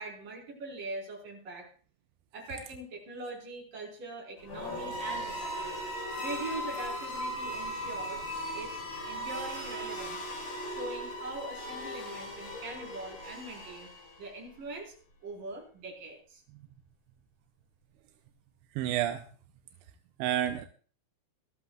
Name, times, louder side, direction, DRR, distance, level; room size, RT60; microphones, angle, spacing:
voice 1, 0.0-1.7 2.3-5.8 6.2-8.2 8.5-8.7 9.1-13.9 14.2-14.9 15.2-16.4, right 2 dB, 50° right, -1 dB, 6.0 m, -42 dB
sound 1, 4.4-14.3, equal, 70° left, 6.4 m, -38 dB
voice 2, 18.8-19.2 20.2-20.7, right 11 dB, 85° right, 6 dB, 3.1 m, -29 dB
21.5 x 13.5 x 2.4 m, 0.41 s
omnidirectional pair, 5.1 m